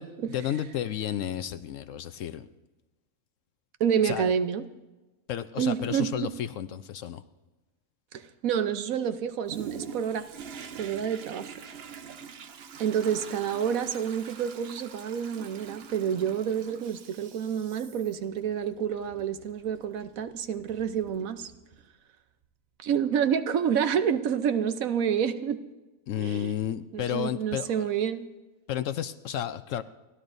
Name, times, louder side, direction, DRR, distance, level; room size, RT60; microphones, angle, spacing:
voice 1, 0.0-2.5 4.0-4.3 5.3-7.2 26.1-27.9 28.7-29.8, left 10 dB, 65° left, 12 dB, 0.9 m, -32 dB
voice 2, 3.8-4.7 5.6-6.3 8.1-10.3 10.7-11.5 12.8-21.5 22.8-25.6 26.2-26.5 26.9-28.3, right 8 dB, 70° right, 10 dB, 1.1 m, -28 dB
Toilet flush, 9.5-21.9 22.4-22.5, right 7 dB, 55° right, 0.8 m, -45 dB
29.5 x 12.5 x 2.6 m, 1.1 s
omnidirectional pair, 1.6 m